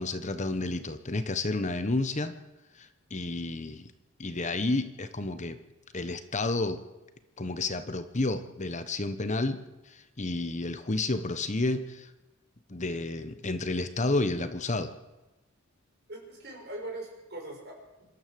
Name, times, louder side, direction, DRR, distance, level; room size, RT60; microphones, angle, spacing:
voice 1, 0.0-2.3 2.7-3.9 4.2-5.6 5.9-6.8 7.4-12.1 12.7-14.9, left 2 dB, 35° left, 10 dB, 1.2 m, -31 dB
voice 2, 16.1-18.1, right 2 dB, 50° right, 0 dB, 6.5 m, -41 dB
26.0 x 13.0 x 7.8 m, 1.0 s
head